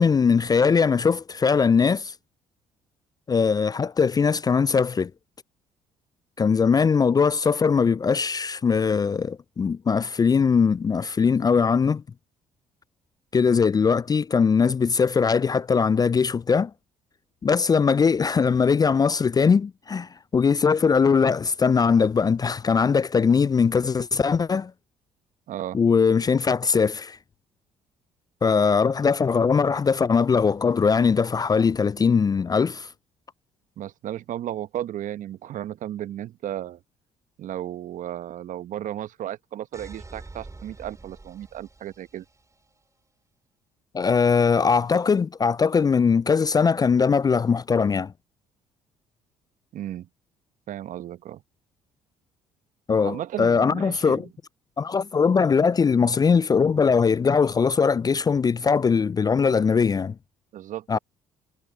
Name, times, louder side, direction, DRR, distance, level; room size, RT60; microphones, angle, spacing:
voice 1, 0.0-2.1 3.3-5.1 6.4-12.0 13.3-16.7 17.4-24.7 25.7-27.2 28.4-32.9 43.9-48.1 52.9-54.2 54.8-60.2 60.9-61.0, left 5 dB, 25° left, 0.4 m, -21 dB
voice 2, 25.5-25.8 33.8-36.8 37.4-42.2 49.7-50.1 50.7-51.4 53.0-54.3 60.5-61.0, right 12 dB, 60° right, 1.2 m, -34 dB
sound 1, 39.7-42.6, right 3 dB, 20° right, 6.4 m, -45 dB
hypercardioid pair, 55°, 15 cm